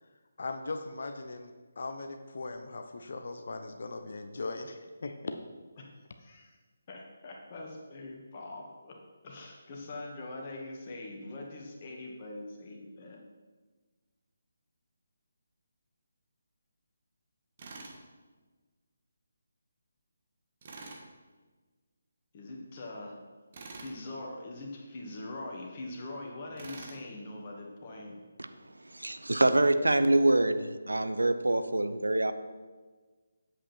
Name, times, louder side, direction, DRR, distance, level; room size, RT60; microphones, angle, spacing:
voice 1, 0.4-1.5 1.8-5.3, left 3 dB, 50° left, 6 dB, 0.8 m, -39 dB
voice 2, 6.2-6.5 6.9-9.0 9.2-13.2 22.3-23.2 23.7-28.2, left 2 dB, 30° left, -1 dB, 1.9 m, -42 dB
Tools, 17.6-18.0 20.6-21.0 23.5-24.0 26.6-27.0, right 3 dB, 35° right, 1.5 m, -45 dB
voice 3, 28.8-32.3, right 2 dB, 70° right, 11 dB, 0.7 m, -25 dB
9.7 x 7.9 x 4.6 m, 1.3 s
figure-of-eight pair, 145°, 0 cm